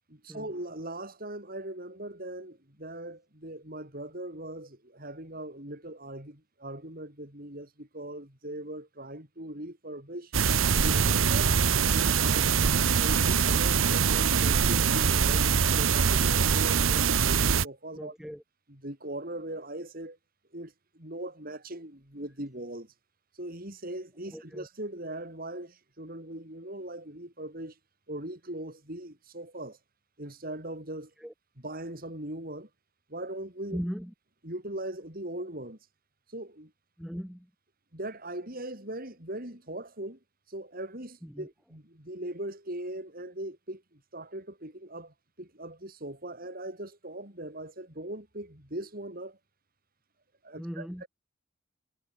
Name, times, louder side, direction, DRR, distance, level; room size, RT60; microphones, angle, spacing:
voice 1, 0.2-10.3 10.7-11.6 11.9-12.5 13.0-18.1 18.7-20.2 20.5-22.9 23.4-27.8 28.1-29.8 30.2-31.1 31.6-32.7 33.1-33.8 34.4-35.8 36.3-36.7 37.9-40.2 40.5-49.4 50.4-51.1, right 1 dB, 45° right, 7.4 m, -40 dB
sound 1, 10.3-17.7, right 6 dB, 90° right, 0.9 m, -23 dB
voice 2, 18.0-18.4 24.3-24.7 31.2-31.3 33.7-34.1 37.0-37.5 41.2-41.5 50.6-51.0, equal, 5° right, 1.2 m, -38 dB
head